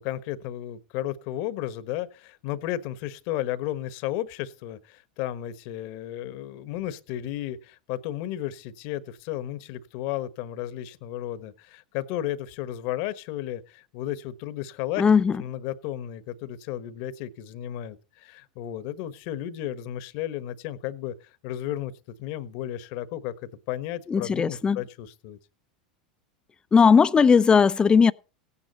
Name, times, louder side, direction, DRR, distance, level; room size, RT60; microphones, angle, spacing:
voice 1, 0.0-15.0 15.4-21.1 21.4-21.9 22.2-25.4, left 12 dB, 60° left, 1.3 m, -33 dB
voice 2, 15.0-15.4 24.1-24.8 26.7-28.1, left 6 dB, 20° left, 0.6 m, -18 dB
16.5 x 9.8 x 4.2 m
hypercardioid pair, 95°, 4 cm